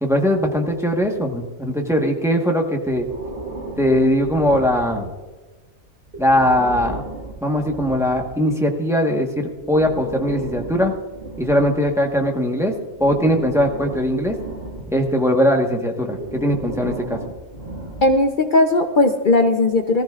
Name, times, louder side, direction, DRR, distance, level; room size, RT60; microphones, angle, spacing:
voice 1, 0.0-3.1 3.8-5.1 6.2-7.0 7.4-10.9 11.4-12.7 13.0-14.4 14.9-17.2, equal, ahead, 2 dB, 1.2 m, -20 dB
Breathing, 2.9-5.3 6.0-8.4 9.5-12.3 12.9-15.2 16.1-18.4, right 2 dB, 45° right, 1.9 m, -34 dB
voice 2, 18.0-20.0, left 2 dB, 45° left, 5 dB, 0.7 m, -17 dB
20.0 x 14.5 x 2.4 m, 1.3 s
omnidirectional pair, 1.4 m